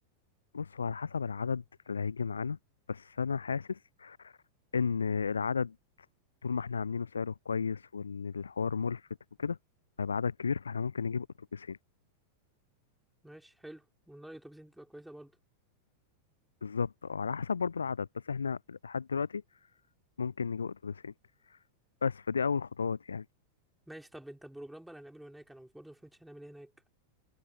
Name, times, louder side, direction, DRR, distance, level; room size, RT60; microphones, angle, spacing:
voice 1, 0.5-2.6 2.9-4.3 4.7-5.8 6.4-9.0 9.4-9.6 10.0-11.3 11.5-11.8 16.6-19.4 20.2-21.1 22.0-23.3, left 5 dB, 75° left, 0.7 m, -33 dB
voice 2, 13.2-15.3 23.9-26.7, right 1 dB, 5° right, 5.3 m, -49 dB
figure-of-eight pair, 90°, 0 cm